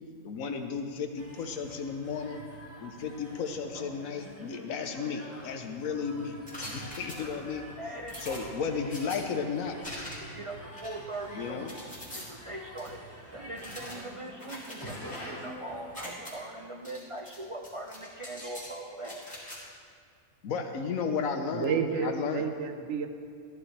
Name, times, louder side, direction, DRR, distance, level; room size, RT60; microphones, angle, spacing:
voice 1, 0.2-2.4 2.8-6.3 6.7-7.6 8.2-9.8 11.3-11.7 20.4-22.4, left 5 dB, 70° left, 5 dB, 1.3 m, -34 dB
sound 1, 1.2-16.3, equal, 10° right, 1.4 m, -48 dB
sound 2, 6.5-7.6 8.1-9.2 9.8-10.4 10.7-12.2 12.8-12.9 13.6-15.5 15.8-16.3 16.8-17.4 17.6-18.7 19.0-19.6, left 1 dB, 5° left, 2.6 m, -43 dB
voice 2, 7.8-8.4 10.0-11.6 12.1-19.4, right 1 dB, 45° right, 1 dB, 0.4 m, -41 dB
voice 3, 21.5-23.1, right 6 dB, 60° right, 7 dB, 1.0 m, -30 dB
14.0 x 12.0 x 3.3 m, 2.3 s
omnidirectional pair, 1.5 m